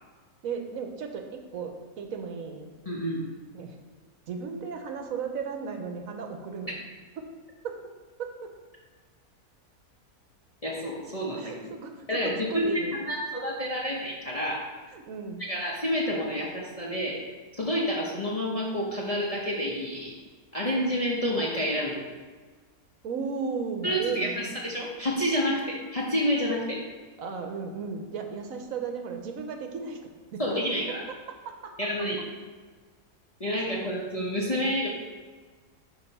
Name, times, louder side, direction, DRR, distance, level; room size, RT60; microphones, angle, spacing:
voice 1, 0.4-2.7 3.5-3.8 4.3-6.8 7.2-7.3 7.6-7.8 8.2-8.5 11.4-13.0 14.9-15.4 23.0-24.5 27.2-30.0 30.3-30.4 31.4-31.7 33.6-33.9, right 5 dB, 70° right, 4 dB, 1.1 m, -35 dB
voice 2, 2.9-3.2 6.7-6.8 10.6-11.8 12.1-14.7 15.4-17.2 17.5-20.1 20.5-22.1 23.8-26.8 30.4-31.0 31.8-32.2 33.4-34.9, equal, 35° left, -4 dB, 0.7 m, -29 dB
8.5 x 2.9 x 5.4 m, 1.4 s
omnidirectional pair, 1.6 m